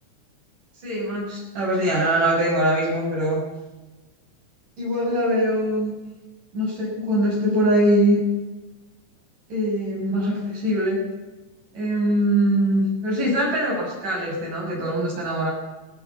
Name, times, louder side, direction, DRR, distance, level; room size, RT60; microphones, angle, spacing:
voice 1, 0.8-3.4 4.8-5.9 6.5-8.2 9.5-11.0 11.7-15.5, right 1 dB, 90° right, -4 dB, 8.2 m, -22 dB
18.5 x 18.5 x 8.5 m, 1.1 s
omnidirectional pair, 3.6 m